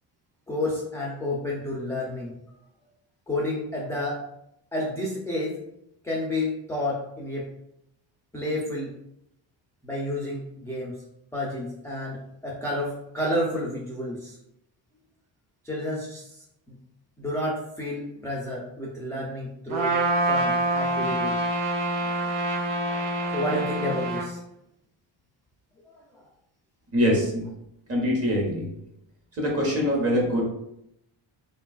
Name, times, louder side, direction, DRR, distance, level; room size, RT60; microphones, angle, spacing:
voice 1, 0.5-2.3 3.3-4.2 4.7-5.6 6.0-7.5 8.3-8.9 9.8-11.0 11.3-14.4 15.6-16.3 16.7-16.8 17.2-19.9 20.3-21.4 22.1-22.2 23.3-24.4, left 1 dB, 5° left, -4 dB, 0.3 m, -30 dB
Trumpet, 19.7-24.3, right 2 dB, 85° right, 0.8 m, -26 dB
voice 2, 26.9-27.4 27.9-28.7 29.4-30.4, equal, 30° right, -2 dB, 0.9 m, -23 dB
3.3 x 2.3 x 2.3 m, 0.79 s
cardioid pair, 120°, 46 cm